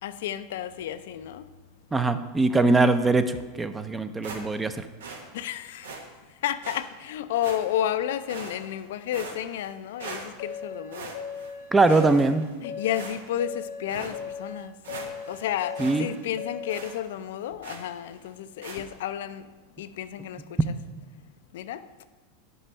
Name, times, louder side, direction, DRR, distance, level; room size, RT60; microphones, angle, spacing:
voice 1, 0.0-1.5 5.3-5.9 6.4-11.2 12.6-14.7 15.3-19.5 19.8-20.6 21.5-21.9, left 11 dB, 75° left, 0.3 m, -31 dB
voice 2, 1.9-4.8 11.7-12.5 15.8-16.1, right 3 dB, 15° right, 0.4 m, -22 dB
sound 1, 4.2-4.7 5.0-5.2 5.8-6.0 6.6-6.8 7.4-7.9 8.3-8.8 9.1-9.7 10.0-10.6 10.9-11.5 11.8-12.5 12.9-13.4 13.9-14.1 14.5-14.6 14.8-15.4 15.8-16.0 16.2-16.3 16.7-17.0 17.6-17.9 18.6-18.8, right 4 dB, 90° right, 1.0 m, -40 dB
sound 2, 10.4-16.9, left 6 dB, 60° left, 0.7 m, -38 dB
5.4 x 5.0 x 5.4 m
supercardioid pair, 120°, 0 cm